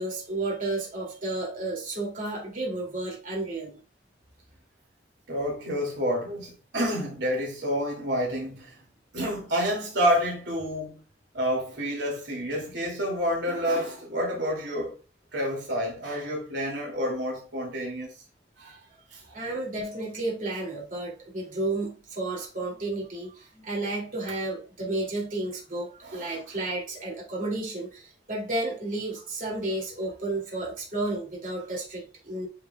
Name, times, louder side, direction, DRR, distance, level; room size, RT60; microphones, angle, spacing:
voice 1, 0.0-3.8 19.3-32.5, right 2 dB, 45° right, 2.6 m, -32 dB
voice 2, 5.3-8.7 9.1-10.9 11.3-15.0 15.3-18.1 18.6-18.8 19.1-19.2 26.0-26.4, equal, 80° right, 2.6 m, -29 dB
8.9 x 4.9 x 2.3 m
head